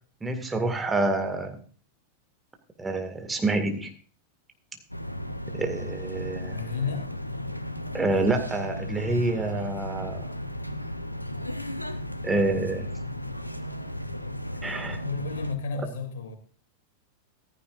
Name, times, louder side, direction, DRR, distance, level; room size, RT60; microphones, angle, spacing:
voice 1, 0.2-1.6 2.8-3.9 5.5-6.8 7.9-10.3 12.2-12.9 14.6-15.0, right 2 dB, 10° right, 2.1 m, -27 dB
sound 1, 4.9-15.5, equal, 85° left, 0.9 m, -35 dB
voice 2, 6.4-7.1 15.0-16.4, left 4 dB, 60° left, 2.8 m, -32 dB
15.0 x 14.5 x 2.6 m
figure-of-eight pair, 90°, 0 cm